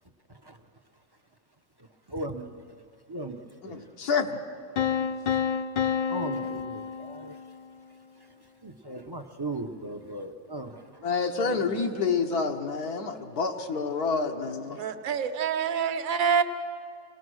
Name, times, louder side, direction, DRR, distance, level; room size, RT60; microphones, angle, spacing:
voice 1, 1.8-2.8 3.1-3.9 6.1-7.4 8.2-8.3 8.6-11.0, right 2 dB, 25° right, 4 dB, 0.6 m, -38 dB
voice 2, 3.6-4.4 5.0-5.1 11.0-14.8, left 5 dB, 80° left, 3 dB, 1.6 m, -28 dB
sound 1, 4.8-7.7, left 7 dB, 60° left, 0.5 m, -29 dB
voice 3, 11.4-12.5 14.7-16.4, right 7 dB, 65° right, 7 dB, 1.4 m, -28 dB
25.5 x 19.0 x 6.3 m, 2.3 s
omnidirectional pair, 1.6 m